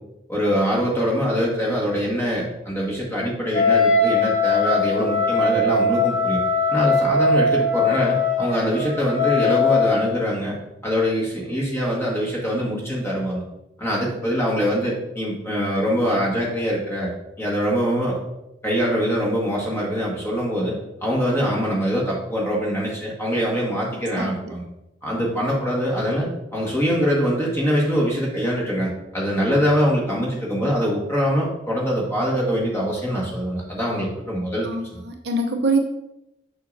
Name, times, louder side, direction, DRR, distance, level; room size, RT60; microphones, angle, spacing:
voice 1, 0.3-6.4 6.7-10.6 10.8-13.4 13.8-17.1 17.4-18.2 18.6-20.7 21.0-24.6 25.0-35.0, equal, 15° left, -4 dB, 1.6 m, -23 dB
Wind instrument woodwind instrument, 3.5-10.2, left 3 dB, 40° left, 0.9 m, -20 dB
voice 2, 34.6-35.8, right 2 dB, 60° right, 2 dB, 0.8 m, -24 dB
6.7 x 6.2 x 2.7 m, 0.86 s
head